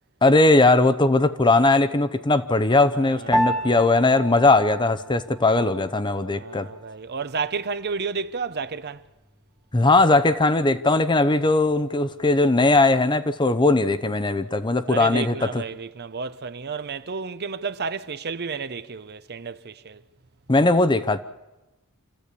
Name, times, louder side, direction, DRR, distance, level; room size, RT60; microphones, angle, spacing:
voice 1, 0.2-6.7 9.7-15.6 20.5-21.2, left 2 dB, 20° left, 0.7 m, -19 dB
voice 2, 2.9-3.8 6.3-9.0 14.9-20.0, right 5 dB, 50° right, 0.8 m, -31 dB
Piano, 3.3-12.9, equal, ahead, 1.1 m, -34 dB
27.5 x 14.0 x 8.3 m
head